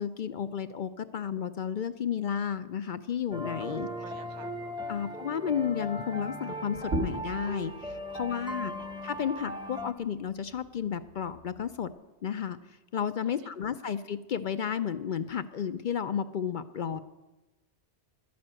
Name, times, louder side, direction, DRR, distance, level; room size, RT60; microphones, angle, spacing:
voice 1, 0.0-3.9 4.9-8.7 9.0-11.9 12.2-17.0, left 8 dB, 55° left, 12 dB, 0.6 m, -32 dB
sound 1, 3.3-9.9, equal, 5° right, 0.7 m, -38 dB
voice 2, 3.6-4.5 4.9-5.2 8.1-8.9 13.4-13.9 16.8-17.0, right 8 dB, 90° right, 12 dB, 1.1 m, -53 dB
sound 2, 6.7-11.9, right 2 dB, 70° right, 2.0 m, -40 dB
12.5 x 9.5 x 7.6 m, 1.1 s
omnidirectional pair, 1.2 m